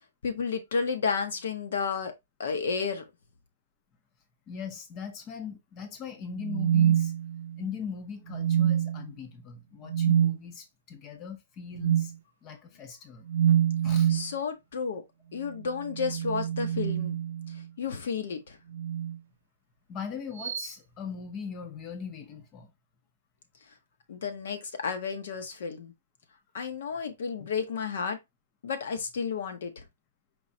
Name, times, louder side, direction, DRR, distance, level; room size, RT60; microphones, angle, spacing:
voice 1, 0.2-2.1 2.4-3.0 14.1-15.0 15.3-17.2 17.5-18.6 24.1-25.9 26.5-28.2 28.6-29.8, left 5 dB, 55° left, 0.9 m, -32 dB
voice 2, 4.5-7.1 7.6-12.1 12.4-13.2 13.8-14.1 19.9-22.7 27.4-27.5, left 6 dB, 15° left, 0.6 m, -40 dB
sound 1, 6.4-7.7 8.3-9.1 9.9-10.4 11.8-12.1 13.3-14.3 15.8-17.6 18.7-19.2 20.4-20.7, right 10 dB, 60° right, 0.4 m, -26 dB
4.6 x 3.0 x 2.7 m
hypercardioid pair, 180°, 0 cm